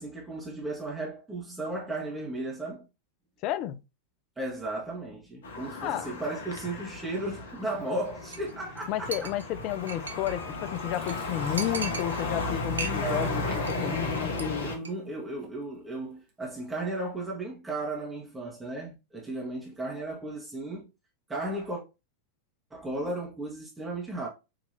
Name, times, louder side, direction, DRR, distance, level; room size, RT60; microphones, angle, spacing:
voice 1, 0.0-2.9 4.4-9.3 12.8-14.1 14.4-20.8 21.3-21.8 22.7-24.3, right 2 dB, 10° right, 1.2 m, -35 dB
voice 2, 3.4-3.8 5.8-6.1 8.9-14.7, left 12 dB, 40° left, 0.4 m, -32 dB
sound 1, 5.4-14.8, left 3 dB, 60° left, 1.0 m, -34 dB
Chink clink, 8.3-8.5 8.8-8.9 9.1-10.4 10.8-10.9 11.1-11.2 11.6-12.4 12.7-13.3 13.5-13.8 14.1-14.4 14.8-14.9, right 4 dB, 70° right, 0.6 m, -37 dB
Fill (with liquid), 10.2-10.5 10.9-15.3 15.7-16.6 17.1-17.3, right 3 dB, 50° right, 1.3 m, -52 dB
5.1 x 2.9 x 2.7 m
figure-of-eight pair, 90°, 0 cm